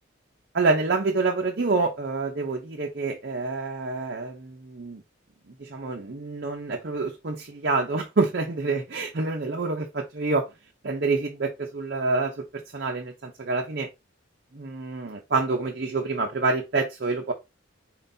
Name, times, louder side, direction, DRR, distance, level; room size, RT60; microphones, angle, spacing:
voice 1, 0.5-5.0 5.6-10.5 10.8-13.9 14.5-17.3, right 3 dB, 55° right, 0.7 m, -27 dB
4.5 x 3.9 x 2.6 m
head